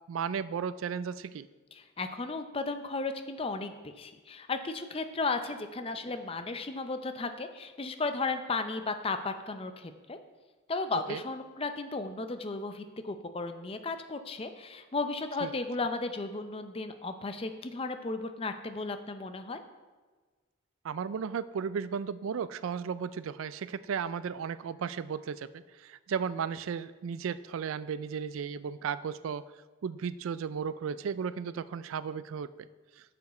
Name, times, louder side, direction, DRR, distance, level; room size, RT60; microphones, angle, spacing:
voice 1, 0.1-1.5 11.1-11.2 15.4-15.5 20.8-29.4 29.8-32.7, right 6 dB, 85° right, 16 dB, 0.4 m, -35 dB
voice 2, 1.7-10.2 10.7-19.6, left 3 dB, 30° left, 8 dB, 0.5 m, -35 dB
8.1 x 7.0 x 4.2 m, 1.3 s
head